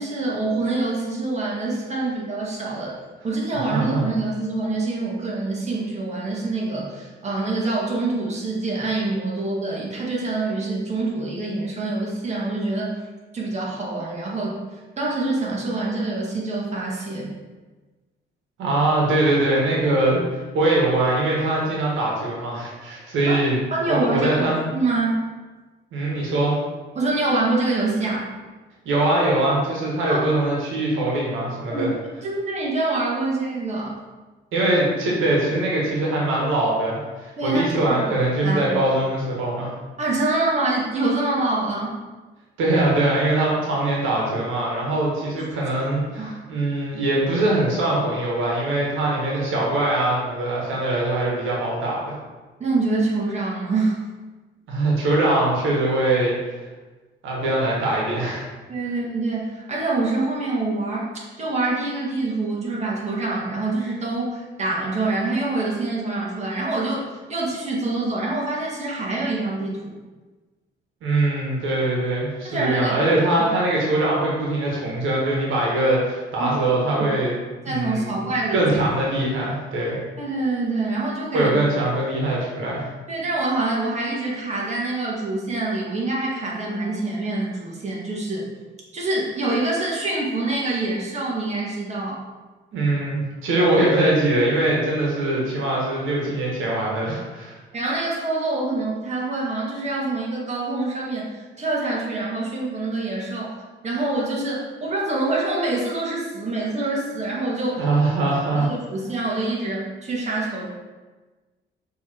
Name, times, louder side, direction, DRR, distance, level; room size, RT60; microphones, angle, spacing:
voice 1, 0.0-2.9 3.2-13.0 13.3-14.6 15.0-17.3 23.3-23.4 23.7-24.3 24.7-25.3 27.0-28.3 30.1-30.2 31.7-31.9 32.2-34.0 37.4-38.0 38.4-38.7 40.0-42.0 46.2-46.3 52.6-54.0 58.7-67.0 67.3-69.9 72.4-73.0 76.4-76.5 77.7-78.7 80.2-81.5 83.1-88.5 88.9-92.2 93.6-93.7 97.7-107.9 108.4-110.7, right 2 dB, 35° right, -5 dB, 1.8 m, -25 dB
voice 2, 3.7-4.1 18.6-23.6 23.9-24.6 25.9-26.6 28.8-31.9 34.5-39.7 42.6-52.1 54.7-56.6 57.2-58.5 71.0-77.4 77.6-78.1 78.5-80.0 81.3-82.9 92.7-97.6 107.8-108.7, right 2 dB, 85° right, -3 dB, 1.6 m, -22 dB
6.3 x 3.5 x 4.5 m, 1.3 s
cardioid pair, 90°, 20 cm